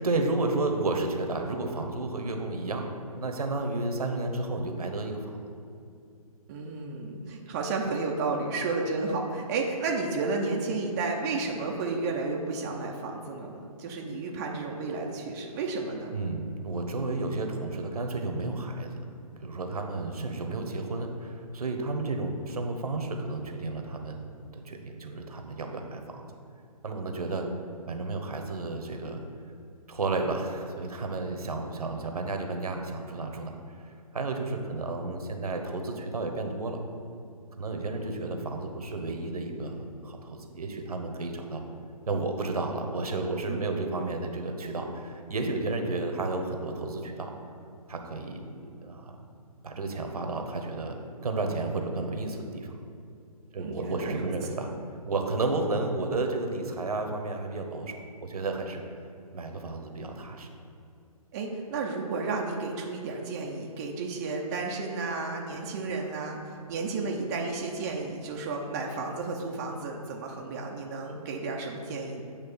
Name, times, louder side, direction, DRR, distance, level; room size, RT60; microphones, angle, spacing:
voice 1, 0.0-5.4 16.1-19.0 19.4-26.3 26.8-27.5 27.9-29.2 29.9-33.5 34.1-36.8 37.6-41.6 42.1-47.4 47.9-49.2 49.6-52.8 53.5-54.7 55.0-58.8 59.3-60.5, right 2 dB, 75° right, 4 dB, 1.0 m, -32 dB
voice 2, 6.5-16.1 43.5-44.0 53.6-54.3 61.3-72.2, right 3 dB, 25° right, 0 dB, 0.6 m, -32 dB
8.5 x 3.2 x 6.1 m, 2.5 s
hypercardioid pair, 145°, 19 cm